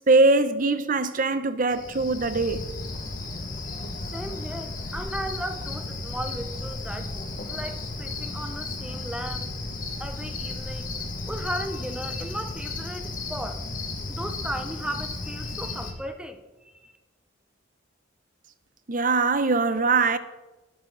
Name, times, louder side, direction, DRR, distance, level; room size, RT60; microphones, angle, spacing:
voice 1, 0.1-2.6 18.9-20.2, right 3 dB, 45° right, 0.9 m, -22 dB
Cricket, 1.7-15.9, left 2 dB, 45° left, 1.8 m, -34 dB
voice 2, 4.1-9.5 10.0-10.9 11.3-13.6 14.1-16.9, right 1 dB, 5° right, 0.8 m, -36 dB
19.0 x 9.1 x 4.0 m
head